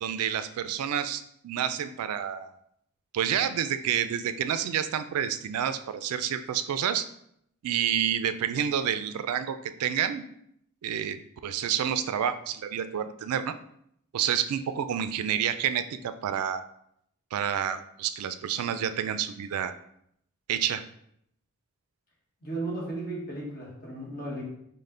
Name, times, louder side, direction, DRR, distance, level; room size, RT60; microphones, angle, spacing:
voice 1, 0.0-2.5 3.1-7.1 7.6-10.2 10.8-13.5 14.1-16.6 17.3-19.7 20.5-20.8, right 9 dB, 80° right, 12 dB, 0.3 m, -29 dB
voice 2, 22.4-24.4, right 2 dB, 40° left, -3 dB, 1.1 m, -35 dB
5.3 x 2.1 x 3.7 m, 0.72 s
head